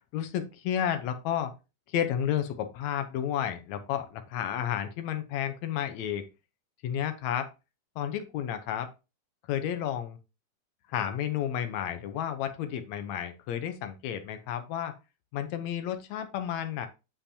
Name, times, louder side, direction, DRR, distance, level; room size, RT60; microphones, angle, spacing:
voice 1, 0.1-1.5 1.9-6.3 6.8-7.5 8.0-8.9 9.5-10.2 10.9-14.9 15.3-16.9, left 10 dB, 70° left, 8 dB, 1.9 m, -31 dB
8.4 x 5.7 x 2.8 m, 0.28 s
omnidirectional pair, 3.7 m